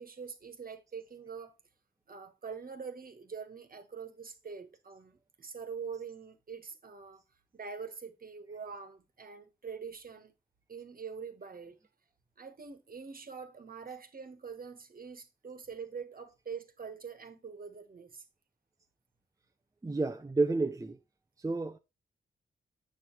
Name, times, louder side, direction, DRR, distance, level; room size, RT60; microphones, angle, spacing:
voice 1, 0.0-1.5 2.1-7.2 7.5-10.3 10.7-11.8 12.4-18.2, right 6 dB, 45° right, 1.5 m, -44 dB
voice 2, 19.8-21.0 21.4-21.8, right 3 dB, 15° right, 0.7 m, -30 dB
7.3 x 6.1 x 3.2 m
supercardioid pair, 45°, 20 cm